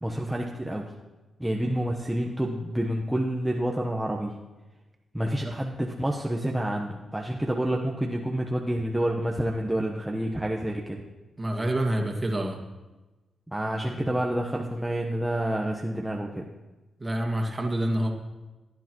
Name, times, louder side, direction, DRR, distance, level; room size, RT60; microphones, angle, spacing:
voice 1, 0.0-0.9 1.4-4.4 5.1-11.0 13.5-16.5, right 1 dB, 10° right, 0 dB, 1.1 m, -28 dB
voice 2, 11.4-12.6 14.0-14.1 17.0-18.1, right 1 dB, 25° right, 2 dB, 2.1 m, -27 dB
16.5 x 9.9 x 3.1 m, 1.1 s
supercardioid pair, 55°, 0 cm